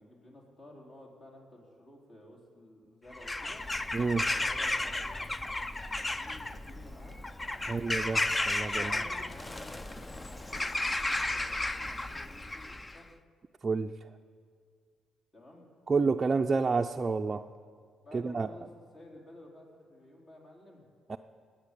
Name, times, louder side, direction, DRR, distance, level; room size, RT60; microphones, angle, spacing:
voice 1, 0.0-3.7 4.1-5.3 6.1-7.2 7.5-7.9 8.7-10.7 11.0-13.1 15.3-15.7 18.0-18.7 18.9-20.8, left 1 dB, 45° left, -1 dB, 4.0 m, -52 dB
Bird vocalization bird call bird song / Crow, 3.1-13.0, left 2 dB, 20° left, 0.6 m, -33 dB
voice 2, 3.9-4.3 7.7-8.9 13.6-14.1 15.9-17.5 18.1-18.5 21.1-21.2, right 4 dB, 30° right, 3 dB, 0.5 m, -29 dB
19.0 x 8.7 x 8.5 m, 2.1 s
cardioid pair, 90°, 0 cm